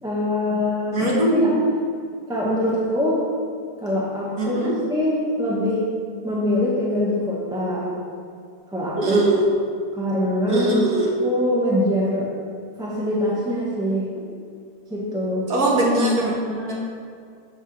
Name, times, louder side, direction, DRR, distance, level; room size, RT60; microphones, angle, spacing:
voice 1, 0.0-1.7 2.3-3.2 3.8-4.6 4.9-5.9 6.2-7.9 8.7-9.2 9.9-10.8 11.2-12.3 12.8-14.1 14.9-15.5, left 1 dB, 5° right, -6 dB, 0.7 m, -23 dB
voice 2, 0.9-1.5 4.4-4.7 9.0-9.5 10.5-11.2 15.5-16.8, right 1 dB, 60° right, -4 dB, 1.8 m, -20 dB
6.5 x 3.7 x 6.2 m, 2.2 s
omnidirectional pair, 1.8 m